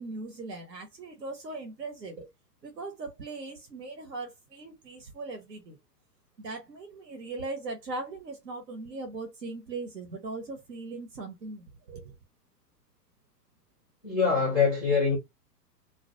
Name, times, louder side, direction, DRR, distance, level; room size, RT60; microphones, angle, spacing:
voice 1, 0.0-2.3 2.6-5.8 6.4-12.1, right 3 dB, 85° right, 0.8 m, -39 dB
voice 2, 14.0-15.2, left 5 dB, ahead, 0.4 m, -24 dB
2.2 x 2.1 x 2.7 m
figure-of-eight pair, 115°, 48 cm